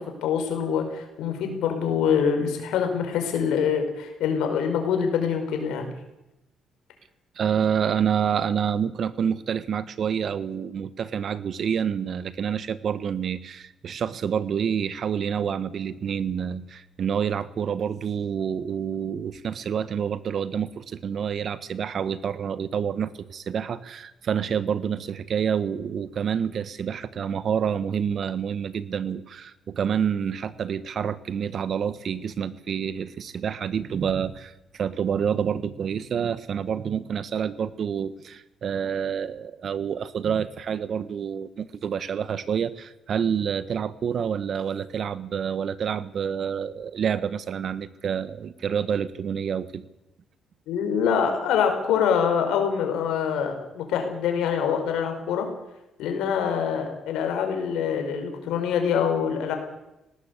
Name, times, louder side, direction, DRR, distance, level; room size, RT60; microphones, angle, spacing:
voice 1, 0.2-5.9 50.7-55.5 56.0-59.5, left 7 dB, 90° left, 5 dB, 5.1 m, -25 dB
voice 2, 7.4-49.8, right 7 dB, 55° right, 15 dB, 1.3 m, -28 dB
19.0 x 18.0 x 8.4 m, 0.93 s
cardioid pair, 90°, 0 cm